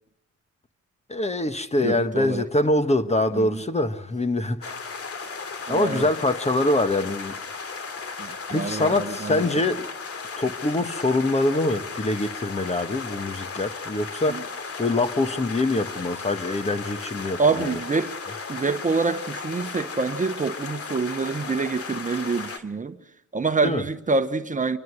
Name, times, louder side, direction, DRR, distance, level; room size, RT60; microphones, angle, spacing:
voice 1, 1.1-4.8 5.5-7.4 8.0-8.1 8.5-9.9 10.4-14.5 14.8-17.7 23.6-23.8, left 2 dB, 20° left, 1.5 m, -24 dB
voice 2, 1.8-2.4 3.3-3.6 5.7-6.1 8.2-9.4 14.3-14.4 17.4-18.2 18.5-23.0 23.3-24.8, right 4 dB, 25° right, 1.2 m, -26 dB
sound 1, 4.6-22.6, left 4 dB, 50° left, 2.7 m, -35 dB
27.0 x 24.0 x 6.6 m
cardioid pair, 90°, 30 cm